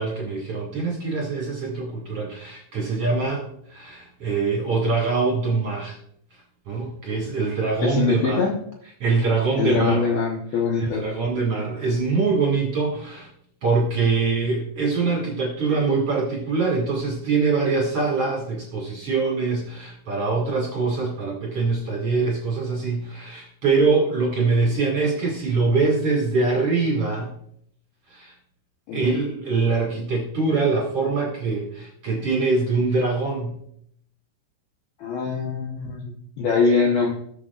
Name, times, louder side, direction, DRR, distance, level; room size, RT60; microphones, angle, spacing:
voice 1, 0.0-6.0 6.7-8.5 9.0-10.0 10.8-13.3 13.6-27.3 28.1-28.3 28.9-33.6, right 4 dB, 45° right, -3 dB, 1.9 m, -23 dB
voice 2, 7.8-8.6 9.6-11.1 28.9-29.2 35.0-37.1, left 5 dB, 90° left, -1 dB, 2.1 m, -23 dB
21.0 x 7.1 x 2.4 m, 0.69 s
omnidirectional pair, 6.0 m